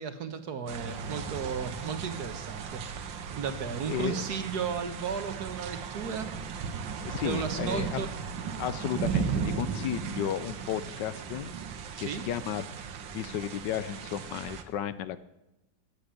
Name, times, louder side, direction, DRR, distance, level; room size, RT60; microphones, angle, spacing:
voice 1, 0.0-3.0 3.4-6.3 7.2-8.1 11.9-12.2, right 6 dB, 60° right, 9 dB, 1.6 m, -34 dB
sound 1, 0.7-14.6, right 6 dB, 85° right, 1.8 m, -36 dB
voice 2, 3.8-4.3 7.0-8.1 8.6-11.5 12.0-12.8 13.1-15.2, left 10 dB, 75° left, 15 dB, 1.3 m, -33 dB
13.0 x 9.1 x 8.4 m, 0.93 s
omnidirectional pair, 2.0 m